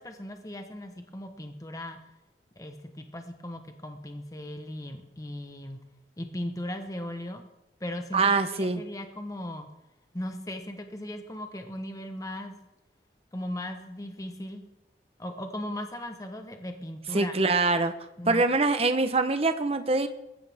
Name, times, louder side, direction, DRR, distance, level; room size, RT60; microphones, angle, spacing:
voice 1, 0.0-2.0 2.6-5.8 6.2-7.4 7.8-8.3 8.6-9.7 10.1-12.6 13.3-14.6 15.2-17.3 18.2-18.5, left 1 dB, 20° left, 5 dB, 1.1 m, -37 dB
voice 2, 8.1-8.8 17.1-17.9 18.3-20.1, right 3 dB, 35° right, 9 dB, 1.0 m, -24 dB
21.0 x 14.5 x 3.6 m, 0.94 s
head